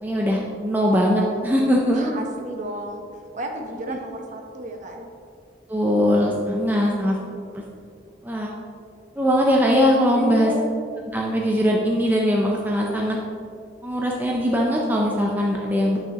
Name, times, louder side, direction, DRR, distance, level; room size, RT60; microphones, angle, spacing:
voice 1, 0.0-2.1 3.9-4.0 5.7-7.2 7.5-7.6 8.2-8.5 9.2-10.5 11.1-13.2 13.8-16.0, equal, 10° right, -2 dB, 0.5 m, -21 dB
voice 2, 1.9-3.1 3.3-5.1 6.7-7.4 10.1-10.7, right 1 dB, 40° right, 2 dB, 0.8 m, -33 dB
9.0 x 6.3 x 2.9 m, 2.3 s
head